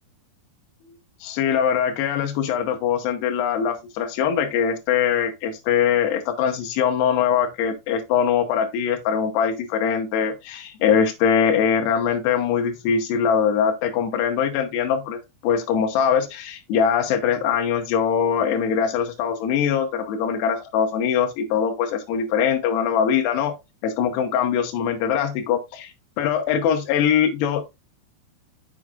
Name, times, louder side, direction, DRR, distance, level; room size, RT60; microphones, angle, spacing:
voice 1, 1.2-23.5 23.8-27.6, left 7 dB, 85° left, 3.1 m, -22 dB
7.8 x 6.5 x 2.4 m
omnidirectional pair, 4.7 m